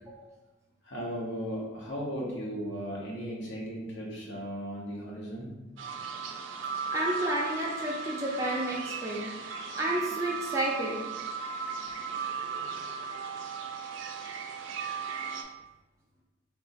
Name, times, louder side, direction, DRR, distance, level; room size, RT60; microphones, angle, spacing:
voice 1, 0.8-5.5, equal, 75° left, -4 dB, 0.9 m, -36 dB
sound 1, 5.8-15.4, right 5 dB, 90° right, 0.4 m, -36 dB
voice 2, 6.9-9.3 9.8-11.0, right 1 dB, 15° right, -4 dB, 0.4 m, -31 dB
2.9 x 2.3 x 4.0 m, 1.1 s
head